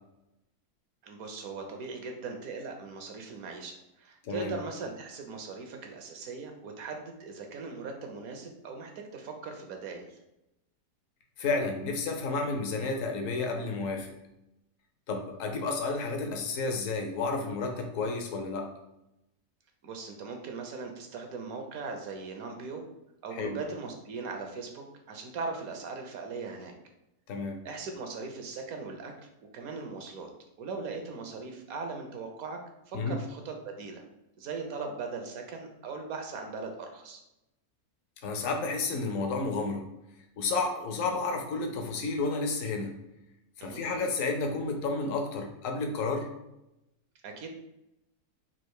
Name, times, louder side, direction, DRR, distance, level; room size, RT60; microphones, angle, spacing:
voice 1, 1.0-10.2 19.8-22.8 23.2-26.7 27.6-29.1 29.5-30.3 30.6-32.6 32.9-34.0 34.4-37.2 43.6-43.8 47.2-47.5, right 4 dB, 70° right, 4 dB, 1.2 m, -39 dB
voice 2, 4.2-4.5 11.4-14.1 15.1-18.7 23.3-23.6 27.3-27.6 32.9-33.2 38.2-39.9 40.4-43.0 43.6-46.3, left 3 dB, 65° left, 3 dB, 1.1 m, -31 dB
4.3 x 2.5 x 4.6 m, 0.90 s
omnidirectional pair, 1.6 m